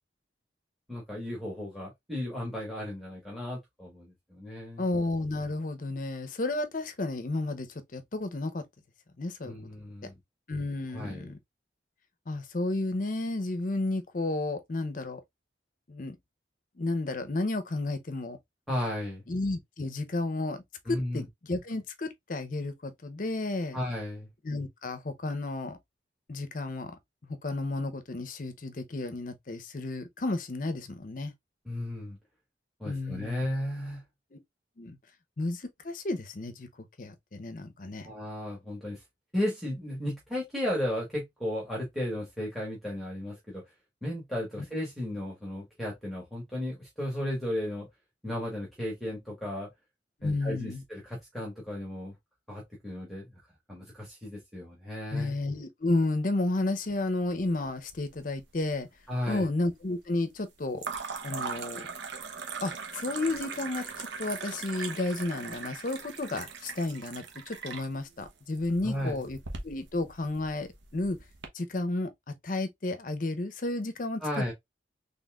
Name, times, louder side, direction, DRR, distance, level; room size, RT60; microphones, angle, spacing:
voice 1, 0.9-4.8 9.4-10.1 10.9-11.3 18.7-19.2 20.8-21.2 23.7-24.3 31.6-32.2 32.8-34.0 38.0-39.0 39.3-43.6 44.0-47.9 48.2-49.7 50.2-52.1 52.5-53.3 53.7-55.3 59.1-59.5 68.8-69.2 74.2-74.5, left 1 dB, ahead, 1.3 m, -34 dB
voice 2, 4.8-8.6 9.2-9.5 10.5-11.4 12.3-15.2 15.9-16.2 16.8-18.4 19.3-23.8 24.4-25.8 26.3-27.0 27.3-31.3 32.8-33.5 34.3-34.4 34.8-35.0 35.4-36.7 37.0-38.1 44.6-44.7 50.2-50.8 55.1-58.9 59.3-60.9 61.2-61.9 62.6-69.4 69.6-71.2 71.5-72.1 72.4-74.5, left 2 dB, 45° left, 0.6 m, -32 dB
sound 1, 57.6-58.4 58.7-59.3 60.8-71.5, right 5 dB, 80° right, 0.9 m, -40 dB
4.1 x 3.3 x 2.3 m
head